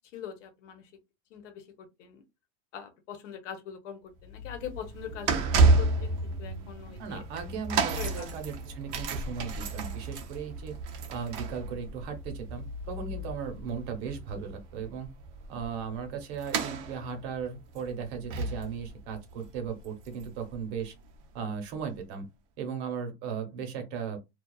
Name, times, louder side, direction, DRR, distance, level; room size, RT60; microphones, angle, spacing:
voice 1, 0.1-0.8 1.3-1.6 2.0-2.2 2.7-7.2 8.0-8.3, left 8 dB, 90° left, 0.9 m, -42 dB
sound 1, 4.2-20.5 20.8-21.0 21.8-21.9, right 3 dB, 35° right, 0.5 m, -31 dB
voice 2, 7.0-10.8 11.1-15.1 15.5-20.9 21.3-22.3 22.6-24.2, right 6 dB, 65° right, 0.9 m, -37 dB
2.4 x 2.3 x 2.3 m
supercardioid pair, 155°, 35 cm